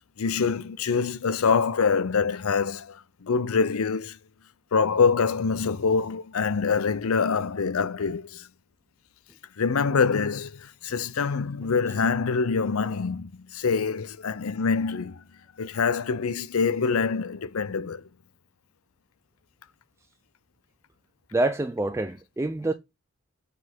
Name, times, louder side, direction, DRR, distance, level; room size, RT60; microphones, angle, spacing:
voice 1, 0.2-4.2 4.7-8.5 9.6-15.2 15.6-18.0, left 5 dB, 80° left, 0.6 m, -25 dB
voice 2, 21.3-22.7, right 2 dB, 15° right, 0.4 m, -26 dB
7.3 x 4.0 x 4.5 m
head